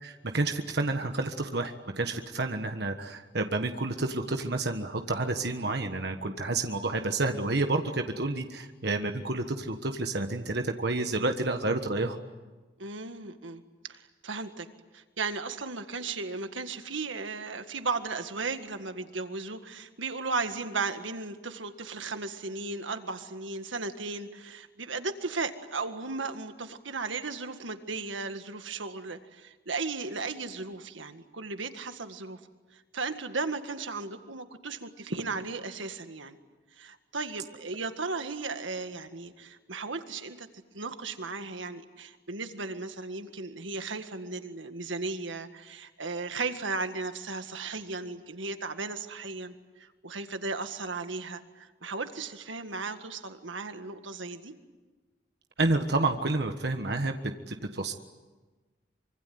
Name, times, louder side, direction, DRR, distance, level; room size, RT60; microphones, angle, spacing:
voice 1, 0.0-12.2 55.6-57.2 57.5-57.9, right 2 dB, 60° right, 6 dB, 1.4 m, -29 dB
voice 2, 12.8-14.7 14.9-32.4 32.7-36.4 36.8-40.5 40.7-54.5, right 3 dB, 85° right, 8 dB, 1.8 m, -36 dB
25.5 x 24.5 x 9.5 m, 1.3 s
head